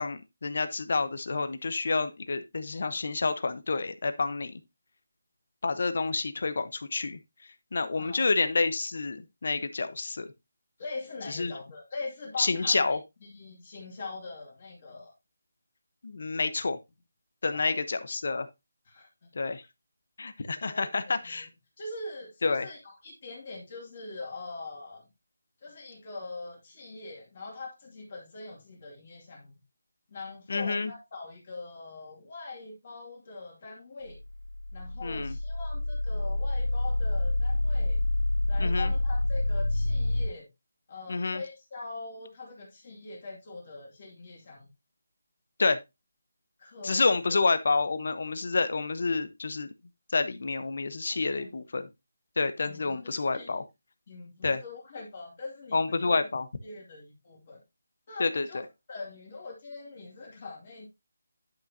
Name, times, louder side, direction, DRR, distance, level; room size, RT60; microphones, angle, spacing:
voice 1, 0.0-4.5 5.6-7.2 7.7-10.3 11.3-11.5 12.4-13.0 16.0-16.8 17.4-18.5 19.3-19.6 20.2-21.5 22.4-22.7 30.5-30.9 35.0-35.3 38.6-38.9 41.1-41.4 45.6-45.8 46.8-49.7 50.1-51.9 52.4-53.6 54.4-54.6 55.7-56.4 58.2-58.5, left 3 dB, 50° left, 1.0 m, -28 dB
voice 2, 10.8-15.1 17.5-17.8 18.9-19.3 20.6-21.5 21.8-25.0 25.6-29.5 30.1-34.2 34.7-38.0 38.5-40.5 40.9-44.7 46.6-47.0 51.1-51.5 52.7-53.6 54.1-56.2 56.6-57.6 58.1-58.6 58.9-60.9, left 3 dB, 30° left, 2.3 m, -42 dB
sound 1, 34.1-40.3, left 1 dB, 75° left, 2.6 m, -28 dB
10.5 x 5.9 x 2.8 m
figure-of-eight pair, 175°, 0 cm